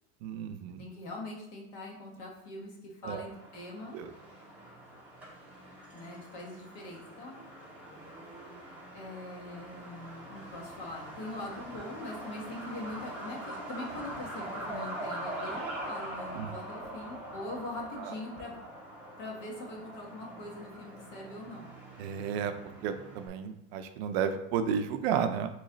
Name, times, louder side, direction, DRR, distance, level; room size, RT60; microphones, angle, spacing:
voice 1, 0.2-0.8 3.0-3.3 3.9-4.1 16.3-16.5 18.0-18.1 22.0-22.5 22.8-25.5, right 7 dB, 60° right, 8 dB, 0.5 m, -32 dB
voice 2, 0.8-4.0 5.9-7.4 8.9-18.6 19.2-21.7, left 2 dB, 55° left, -1 dB, 1.3 m, -42 dB
Truck, 3.3-23.3, right 1 dB, 5° right, 0.9 m, -43 dB
4.0 x 3.1 x 3.8 m, 0.80 s
supercardioid pair, 155°, 37 cm